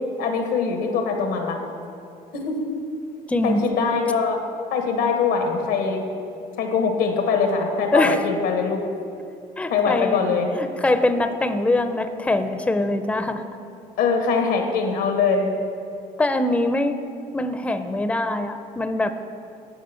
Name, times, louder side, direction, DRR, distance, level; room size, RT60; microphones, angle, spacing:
voice 1, 0.2-1.6 2.3-2.6 3.4-4.4 4.7-6.0 6.6-8.8 9.7-10.5 14.0-15.5, left 5 dB, 90° left, 4 dB, 1.2 m, -22 dB
voice 2, 3.3-3.8 7.9-8.2 9.6-10.2 10.6-13.4 16.2-17.0 17.3-19.1, left 2 dB, 5° left, 8 dB, 0.5 m, -23 dB
10.0 x 5.0 x 5.7 m, 2.6 s
cardioid pair, 85°, 17 cm